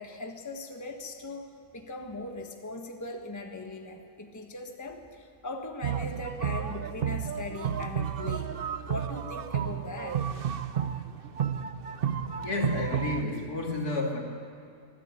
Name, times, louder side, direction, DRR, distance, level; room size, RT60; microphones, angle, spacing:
voice 1, 0.0-8.5 8.9-10.3, left 2 dB, 10° left, 3 dB, 1.4 m, -39 dB
sound 1, 5.8-13.2, right 8 dB, 50° right, 0.7 m, -32 dB
voice 2, 12.4-14.2, left 2 dB, 75° left, 0 dB, 3.3 m, -30 dB
24.5 x 15.0 x 8.6 m, 2.5 s
omnidirectional pair, 1.6 m